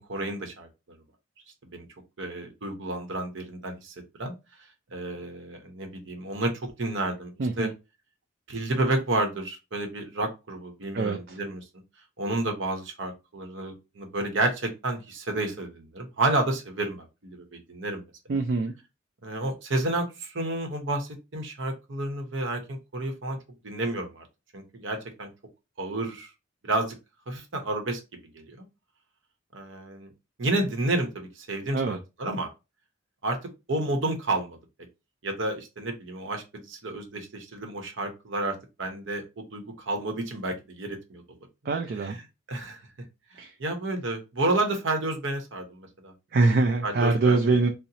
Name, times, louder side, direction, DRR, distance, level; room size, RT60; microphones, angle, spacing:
voice 1, 0.1-0.7 1.7-1.9 2.2-4.3 4.9-7.7 8.5-11.6 12.2-18.0 18.3-18.4 19.2-23.4 23.6-24.2 24.5-25.3 25.8-26.3 26.6-26.9 27.3-28.0 28.3-28.6 29.5-30.1 30.4-32.5 33.2-33.4 33.7-34.6 35.2-41.2 42.0-42.2 42.5-42.8 43.6-46.1 46.4-46.5 46.8-47.4, right 2 dB, 70° right, 0.8 m, -30 dB
voice 2, 7.4-7.7 10.9-11.4 18.3-18.7 31.7-32.0 41.7-42.2 43.4-43.5 46.3-47.7, right 3 dB, 50° right, 0.4 m, -24 dB
2.8 x 2.0 x 3.9 m
head